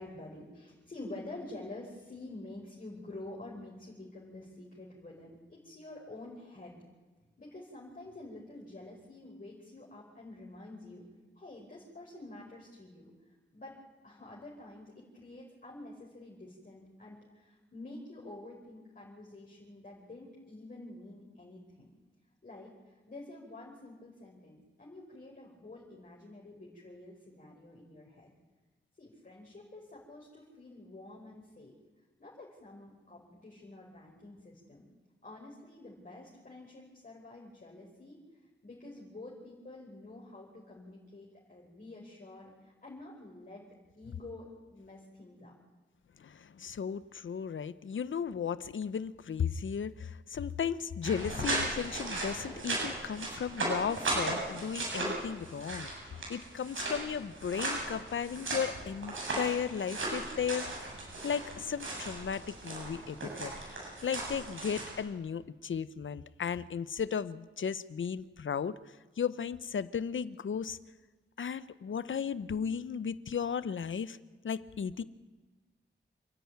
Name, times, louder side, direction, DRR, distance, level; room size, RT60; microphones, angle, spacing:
voice 1, 0.0-6.8 7.4-11.0 11.3-13.1 13.5-13.8 14.0-21.9 22.4-28.3 29.0-31.8 32.2-34.9 35.2-38.2 38.6-43.6 44.0-45.5, left 2 dB, 45° left, -4 dB, 5.0 m, -48 dB
voice 2, 46.2-55.9 56.3-60.7 61.2-70.8 71.4-74.2 74.4-75.0, left 7 dB, 85° left, 16 dB, 0.8 m, -35 dB
sound 1, 51.0-64.9, right 2 dB, 90° right, 7.3 m, -37 dB
28.5 x 10.5 x 9.5 m, 1.2 s
wide cardioid pair, 90°, 20 cm